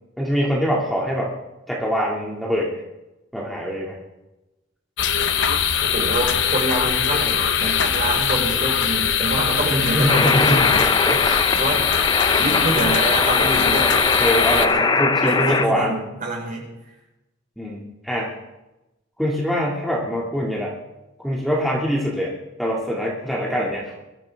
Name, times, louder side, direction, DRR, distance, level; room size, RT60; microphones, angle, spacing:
voice 1, 0.2-1.3 1.7-2.7 3.3-4.0 9.9-11.6 14.2-16.0 17.6-18.4 19.2-20.8 21.2-22.3 22.6-23.9, equal, ahead, -4 dB, 2.3 m, -24 dB
sound 1, 5.0-14.7, left 8 dB, 65° left, 0.9 m, -21 dB
voice 2, 5.9-10.9 11.5-11.9 12.3-14.0 14.7-16.7, right 1 dB, 45° right, -1 dB, 4.9 m, -26 dB
sound 2, 10.1-15.6, left 4 dB, 20° left, 0.6 m, -21 dB
22.5 x 14.0 x 3.5 m, 0.98 s
head